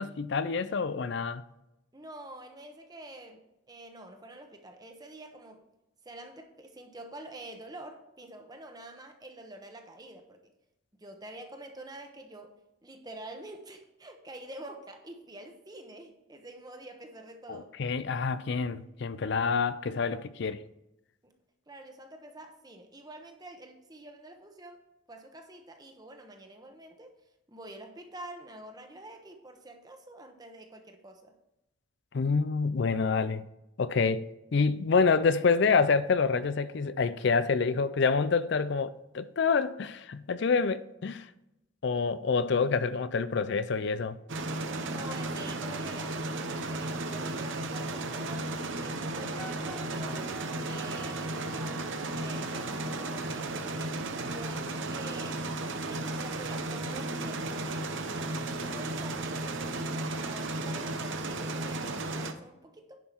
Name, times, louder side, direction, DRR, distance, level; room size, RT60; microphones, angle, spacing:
voice 1, 0.0-1.4 17.5-20.6 32.1-33.4 33.8-34.2 34.5-41.3 41.8-44.2, left 5 dB, 55° left, 0.4 m, -27 dB
voice 2, 1.9-3.4 3.7-5.6 6.0-10.4 11.0-12.6 12.8-17.7 21.2-21.3 21.7-24.8 25.1-27.1 27.5-31.3 44.9-48.5 48.8-50.3 50.6-54.0 54.3-57.7 58.1-63.0, right 1 dB, 20° right, 1.0 m, -47 dB
sound 1, 44.3-62.3, right 2 dB, 65° right, 0.8 m, -34 dB
Wind instrument woodwind instrument, 49.3-53.3, left 1 dB, 10° left, 1.0 m, -49 dB
10.5 x 5.7 x 4.5 m
head